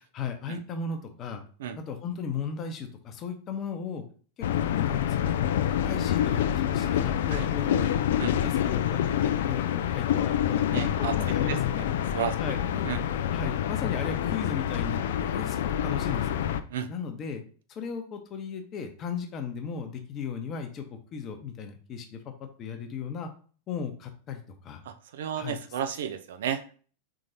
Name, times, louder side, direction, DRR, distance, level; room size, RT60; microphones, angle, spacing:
voice 1, 0.1-1.4 1.7-4.0 4.5-6.4 6.7-7.9 8.3-11.9 12.4-13.0 13.3-16.4 16.9-17.4 17.7-22.3 22.6-23.3 23.7-24.8 25.3-25.6, left 6 dB, 30° left, 5 dB, 0.9 m, -36 dB
sound 1, 4.4-16.6, left 10 dB, 55° left, 0.3 m, -27 dB
voice 2, 10.7-11.1 11.5-11.6 12.1-12.3 12.8-13.0 16.7-16.9 24.9-26.8, right 9 dB, 60° right, 9 dB, 0.4 m, -32 dB
4.9 x 3.8 x 2.7 m, 0.41 s
figure-of-eight pair, 90°, 0 cm